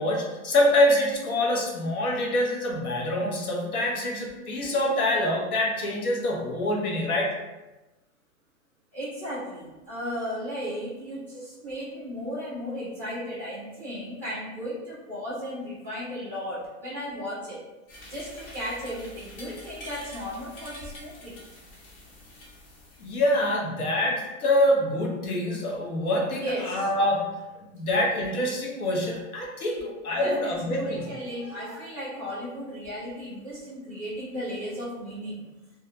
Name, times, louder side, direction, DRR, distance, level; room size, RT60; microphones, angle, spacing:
voice 1, 0.0-7.3 23.0-27.4 27.7-31.1, left 1 dB, 85° left, -1 dB, 0.9 m, -25 dB
voice 2, 8.9-17.6 18.1-21.5 26.3-26.8 30.2-35.5, equal, 5° left, -9 dB, 0.4 m, -35 dB
sound 1, 17.9-23.6, left 1 dB, 45° left, 0.8 m, -46 dB
2.3 x 2.0 x 2.9 m, 1.1 s
hypercardioid pair, 140°, 43 cm